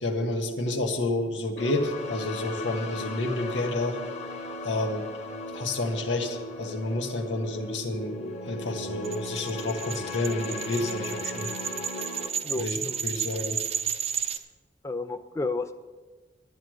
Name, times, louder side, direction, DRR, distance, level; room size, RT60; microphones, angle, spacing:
voice 1, 0.0-4.0 4.6-5.0 5.5-8.2 8.4-11.5 12.5-13.6, left 2 dB, 80° left, 4 dB, 1.6 m, -29 dB
sound 1, 1.6-12.3, left 2 dB, 40° left, 1.3 m, -37 dB
sound 2, 9.0-14.4, right 8 dB, 35° right, 0.8 m, -33 dB
voice 2, 12.4-13.0 14.8-15.8, left 3 dB, 15° left, 9 dB, 0.4 m, -32 dB
11.0 x 10.5 x 6.4 m, 1.3 s
head